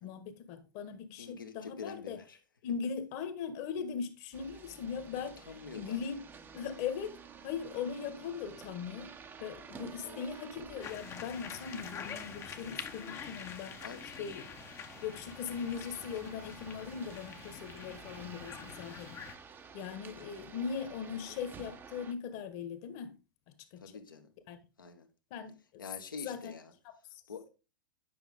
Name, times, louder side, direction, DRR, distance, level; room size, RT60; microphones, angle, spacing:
voice 1, 0.0-2.2 2.6-5.4 5.7-6.2 6.5-9.1 9.4-13.8 14.2-14.5 15.0-19.2 19.7-23.2 23.7-23.9 24.5-24.6 25.3-25.8 26.2-26.5 26.9-27.2, left 7 dB, 45° left, 1.6 m, -40 dB
voice 2, 1.2-2.4 5.5-6.0 10.0-10.2 13.8-14.0 18.2-18.5 20.1-20.8 23.8-24.3 24.8-25.1 25.8-26.7 27.3-27.5, left 5 dB, 75° left, 1.6 m, -46 dB
sound 1, 4.3-22.1, right 6 dB, 20° right, 0.9 m, -51 dB
sound 2, 10.8-19.3, left 7 dB, 25° left, 1.0 m, -46 dB
10.0 x 5.8 x 3.7 m
figure-of-eight pair, 100°, 11 cm